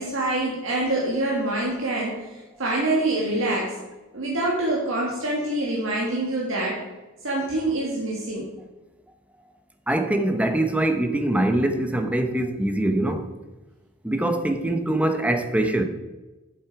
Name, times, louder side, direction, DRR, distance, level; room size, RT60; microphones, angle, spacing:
voice 1, 0.0-3.7 4.1-6.8 7.2-8.4, right 2 dB, 65° right, 1.8 m, -25 dB
voice 2, 9.9-13.3 14.0-15.8, right 1 dB, 5° right, 0.7 m, -23 dB
7.9 x 7.9 x 4.8 m
head